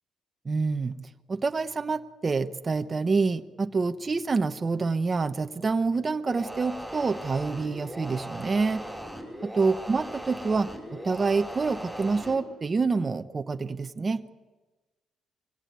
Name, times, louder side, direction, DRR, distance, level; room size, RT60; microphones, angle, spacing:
voice 1, 0.4-1.0 1.3-8.8 9.4-14.2, right 4 dB, 30° right, 7 dB, 1.0 m, -27 dB
sound 1, 6.3-12.4, equal, ahead, 5.6 m, -39 dB
23.5 x 17.0 x 9.0 m, 1.2 s
cardioid pair, 90°, 0 cm